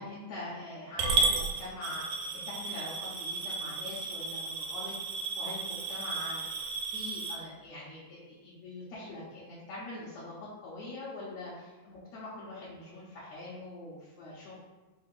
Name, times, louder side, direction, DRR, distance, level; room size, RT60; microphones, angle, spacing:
voice 1, 0.0-4.9 5.4-14.5, left 2 dB, 75° left, -10 dB, 2.2 m, -43 dB
Coin (dropping) / Glass, 1.0-7.3, right 4 dB, 85° right, 2.0 m, -33 dB
5.1 x 2.8 x 3.7 m, 1.2 s
omnidirectional pair, 3.3 m